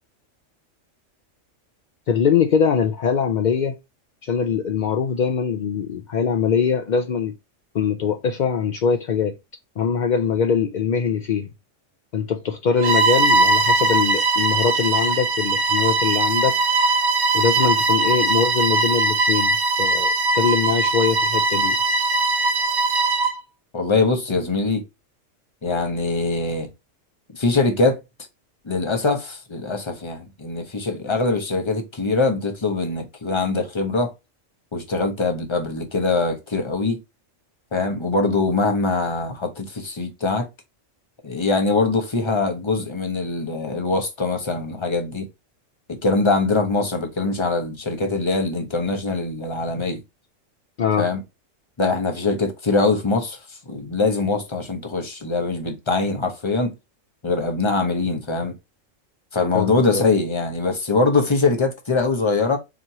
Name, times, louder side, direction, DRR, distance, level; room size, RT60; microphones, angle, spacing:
voice 1, 2.1-3.8 4.2-7.3 7.7-9.3 9.8-11.5 12.1-16.6 17.3-21.8 50.8-51.1 59.5-60.0, left 6 dB, 60° left, 0.5 m, -22 dB
Bowed string instrument, 12.8-23.4, right 3 dB, 65° right, 0.9 m, -20 dB
voice 2, 23.7-24.8 25.6-26.7 27.3-28.0 28.6-34.1 34.7-37.0 37.7-40.5 41.2-45.3 45.9-50.0 51.0-51.2 51.8-53.4 53.7-56.7 57.2-58.5 59.3-62.6, left 3 dB, 25° left, 0.8 m, -22 dB
4.3 x 3.0 x 2.7 m
omnidirectional pair, 1.3 m